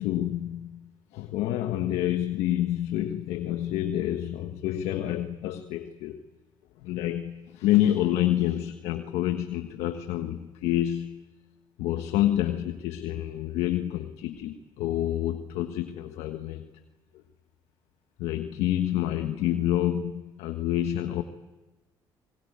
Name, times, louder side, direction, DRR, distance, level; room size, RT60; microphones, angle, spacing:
voice 1, 0.0-6.2 6.8-11.3 11.8-16.7 18.2-21.2, left 12 dB, 80° left, 7 dB, 1.4 m, -28 dB
25.0 x 22.5 x 9.5 m, 1.1 s
supercardioid pair, 70°, 11 cm